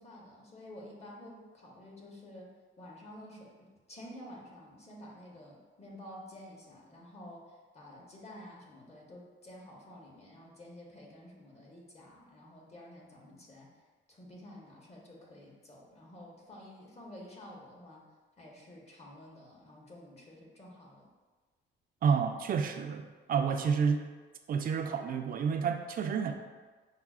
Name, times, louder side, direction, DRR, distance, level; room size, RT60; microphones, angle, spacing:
voice 1, 0.0-2.5 2.8-3.5 3.9-13.7 14.1-18.0 18.4-21.1, left 1 dB, 30° left, -2 dB, 0.9 m, -50 dB
voice 2, 22.0-24.0 24.5-26.3, right 6 dB, 45° right, 6 dB, 0.4 m, -29 dB
5.5 x 2.0 x 2.4 m, 1.4 s
cardioid pair, 90°, 20 cm